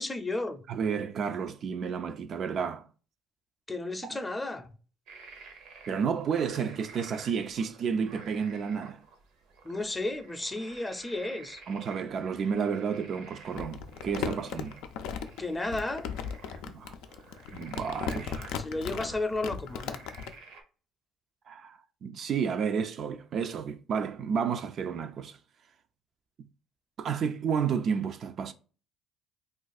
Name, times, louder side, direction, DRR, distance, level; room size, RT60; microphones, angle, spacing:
voice 1, 0.0-0.6 3.7-4.7 9.6-11.6 15.4-16.1 18.6-20.0, left 2 dB, 15° left, 0.5 m, -33 dB
voice 2, 0.7-2.9 4.1-4.2 5.9-9.0 11.7-14.8 16.7-16.9 17.5-18.6 21.5-25.4 27.0-28.5, right 6 dB, 50° right, 0.3 m, -31 dB
sound 1, 5.1-20.6, right 4 dB, 80° right, 0.7 m, -52 dB
Crumpling crinkling, 13.5-20.3, left 7 dB, 80° left, 0.4 m, -36 dB
2.4 x 2.4 x 4.0 m
cardioid pair, 95°, 0 cm